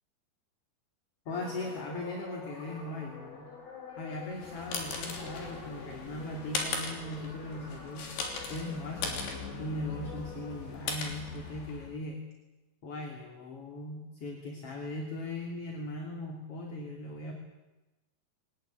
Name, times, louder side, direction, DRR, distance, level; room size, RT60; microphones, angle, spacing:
sound 1, 1.3-10.7, left 4 dB, 85° left, 8.2 m, -47 dB
voice 1, 1.3-3.5 4.0-8.2 8.5-12.3 12.8-17.3, left 2 dB, 35° left, 1 dB, 3.2 m, -39 dB
sound 2, 4.2-12.0, left 4 dB, 65° left, 5.3 m, -39 dB
23.0 x 19.5 x 9.3 m, 1.1 s
omnidirectional pair, 5.1 m